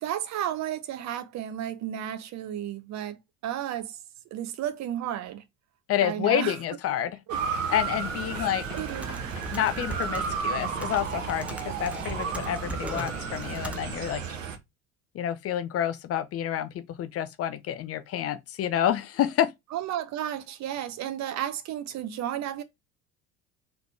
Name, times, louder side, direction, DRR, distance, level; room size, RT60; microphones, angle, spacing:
voice 1, 0.0-3.2 3.4-4.0 4.3-5.4 6.0-6.6 7.3-7.4 8.3-9.2 19.7-22.6, right 11 dB, 45° right, 0.8 m, -33 dB
sound 1, 5.3-5.4 7.7-10.5, left 6 dB, 65° left, 1.2 m, -47 dB
voice 2, 5.9-7.2 7.7-8.6 9.5-14.2 15.1-19.5, left 10 dB, 40° left, 0.6 m, -28 dB
Motor vehicle (road) / Siren, 7.3-14.6, right 6 dB, 85° right, 0.8 m, -33 dB
Computer keyboard, 8.0-14.3, right 2 dB, 5° right, 0.7 m, -39 dB
3.8 x 3.4 x 3.3 m
figure-of-eight pair, 65°, 38 cm